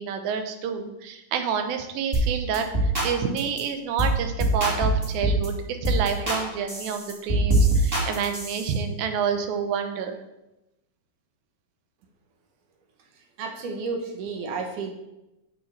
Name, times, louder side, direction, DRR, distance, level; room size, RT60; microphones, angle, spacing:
voice 1, 0.0-10.2, right 7 dB, 85° right, 6 dB, 2.6 m, -28 dB
sound 1, 2.1-2.3 2.5-3.1 3.4-3.6 4.0-4.1 4.4-5.5 5.8-6.4 6.7-8.7, right 1 dB, 25° right, 1.3 m, -23 dB
voice 2, 13.4-14.9, right 4 dB, 70° right, 3 dB, 2.2 m, -31 dB
9.5 x 7.2 x 3.3 m, 0.94 s
omnidirectional pair, 4.1 m